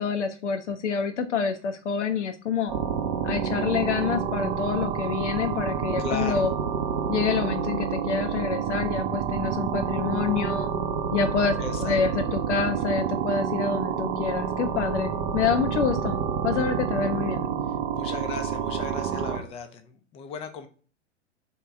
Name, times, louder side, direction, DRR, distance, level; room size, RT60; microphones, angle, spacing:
voice 1, 0.0-2.7 3.2-6.5 7.1-10.7 11.1-17.5, left 6 dB, 75° left, 7 dB, 0.5 m, -27 dB
sound 1, 2.7-19.4, right 7 dB, 40° right, 0.6 m, -28 dB
voice 2, 6.0-6.5 11.6-12.0 18.0-20.7, left 6 dB, 15° left, 8 dB, 0.4 m, -36 dB
3.6 x 2.8 x 4.3 m, 0.41 s
figure-of-eight pair, 100°, 36 cm